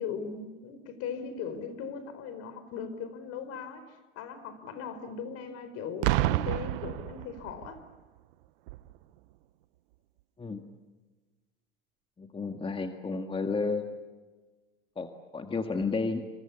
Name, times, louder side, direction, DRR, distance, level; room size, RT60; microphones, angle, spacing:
voice 1, 0.0-7.8, left 6 dB, 55° left, 11 dB, 4.5 m, -39 dB
Boom, 6.0-7.8 8.7-8.9, right 17 dB, 65° right, 1.1 m, -29 dB
voice 2, 12.2-13.9 15.0-16.2, left 4 dB, 20° left, 6 dB, 1.9 m, -32 dB
27.5 x 26.5 x 7.1 m, 1.3 s
hypercardioid pair, 90°, 30 cm